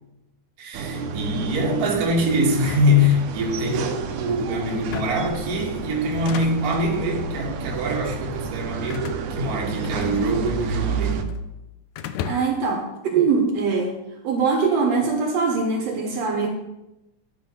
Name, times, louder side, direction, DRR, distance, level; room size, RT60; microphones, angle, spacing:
voice 1, 0.6-11.2, left 1 dB, 40° right, 0 dB, 1.4 m, -24 dB
sound 1, 0.7-11.2, right 5 dB, 85° right, 2.2 m, -30 dB
sound 2, 2.5-3.7 4.7-5.4 6.0-6.9 7.7-8.1 8.9-10.4 10.7-11.5 12.0-12.7, left 8 dB, 80° left, 1.8 m, -36 dB
voice 2, 12.2-13.9 14.2-16.5, right 5 dB, 70° right, 2 dB, 2.0 m, -22 dB
11.5 x 4.1 x 5.6 m, 0.94 s
omnidirectional pair, 3.4 m